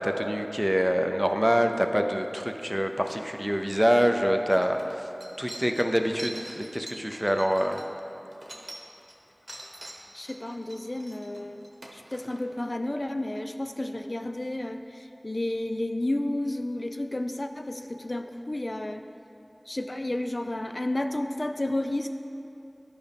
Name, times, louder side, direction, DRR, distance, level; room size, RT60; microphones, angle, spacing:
voice 1, 0.0-4.8 5.4-7.8, equal, 5° right, 5 dB, 0.5 m, -25 dB
sound 1, 4.5-9.2 9.5-12.4, right 1 dB, 75° right, 0.9 m, -44 dB
voice 2, 10.1-11.6 11.9-19.0 19.7-22.1, left 1 dB, 55° left, 6 dB, 0.3 m, -31 dB
11.5 x 5.2 x 3.5 m, 2.8 s
wide cardioid pair, 40°, 0 cm